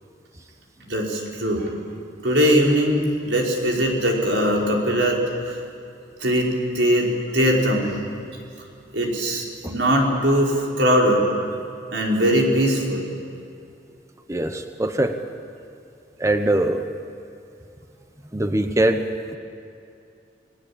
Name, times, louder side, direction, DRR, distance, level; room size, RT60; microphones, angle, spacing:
voice 1, 0.9-1.7 2.2-5.6 6.2-6.5 6.7-7.9 8.9-11.2 11.9-13.0, equal, 90° right, -1 dB, 4.9 m, -20 dB
voice 2, 14.3-15.2 16.2-16.9 18.3-19.4, right 1 dB, 15° right, 7 dB, 1.0 m, -22 dB
29.5 x 19.0 x 8.7 m, 2.6 s
head